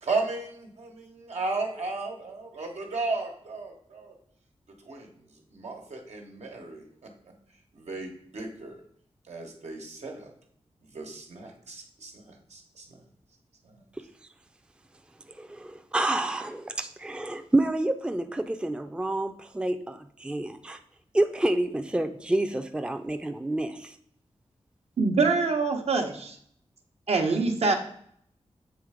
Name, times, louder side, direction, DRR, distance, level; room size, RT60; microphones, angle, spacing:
voice 1, 0.0-4.1 4.8-5.1 5.5-7.1 7.7-8.8 9.3-10.3 10.9-13.0 13.6-13.7, right 3 dB, 85° right, 1 dB, 1.3 m, -35 dB
voice 2, 15.4-20.8 21.1-23.9, right 1 dB, 10° right, 8 dB, 0.4 m, -28 dB
voice 3, 25.0-26.4 27.1-27.8, right 4 dB, 70° right, 4 dB, 0.9 m, -24 dB
7.3 x 3.3 x 4.9 m, 0.67 s
wide cardioid pair, 85°, 11 cm